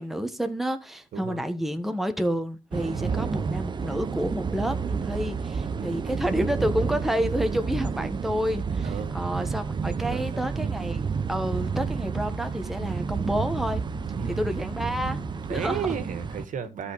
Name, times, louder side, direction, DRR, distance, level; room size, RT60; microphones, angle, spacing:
voice 1, 0.0-13.8 14.2-15.9, equal, ahead, 1.4 m, -29 dB
voice 2, 1.1-1.4 2.9-3.3 5.7-6.1 8.8-9.1 10.0-10.5 14.1-14.5 15.5-16.9, right 6 dB, 65° right, 2.0 m, -34 dB
sound 1, 2.7-16.4, right 5 dB, 30° right, 0.8 m, -30 dB
sound 2, 11.1-16.2, left 6 dB, 40° left, 1.1 m, -45 dB
13.0 x 6.0 x 4.9 m
cardioid pair, 115°, 14 cm